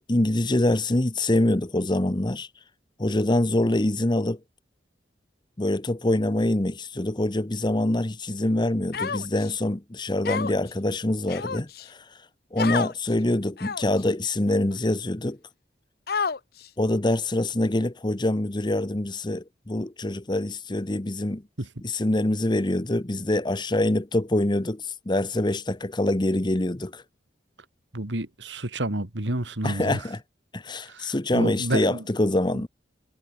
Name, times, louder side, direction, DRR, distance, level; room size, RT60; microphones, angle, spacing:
voice 1, 0.0-2.5 3.0-4.4 5.6-12.0 12.5-15.4 16.8-21.4 21.8-27.0 29.6-30.2 30.5-32.7, left 1 dB, 25° left, 1.0 m, -25 dB
Human voice, 8.9-9.5 10.2-10.7 11.3-11.9 12.6-12.9 13.6-14.0 14.7-14.8 16.1-16.7, left 5 dB, 55° left, 0.8 m, -29 dB
voice 2, 27.9-30.0 30.9-32.0, right 1 dB, 80° right, 2.6 m, -30 dB
head